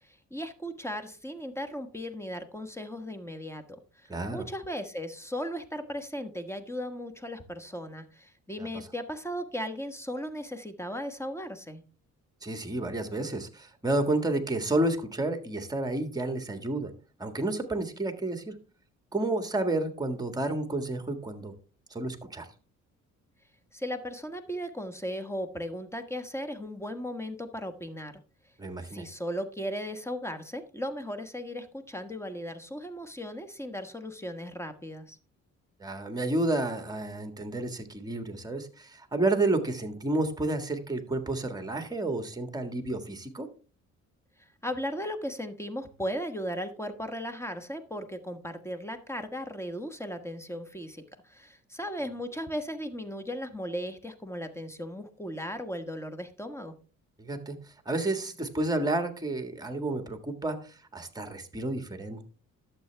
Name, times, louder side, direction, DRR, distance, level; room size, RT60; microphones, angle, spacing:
voice 1, 0.0-11.8 23.7-28.1 28.8-35.2 44.4-56.7, equal, 10° left, 8 dB, 1.3 m, -37 dB
voice 2, 4.1-4.4 8.6-8.8 12.4-16.9 17.2-18.5 19.1-21.5 21.9-22.5 28.6-29.1 35.8-43.5 57.2-57.6 57.8-62.2, right 2 dB, 15° right, 7 dB, 1.7 m, -30 dB
12.0 x 7.2 x 3.4 m, 0.38 s
cardioid pair, 90°, 30 cm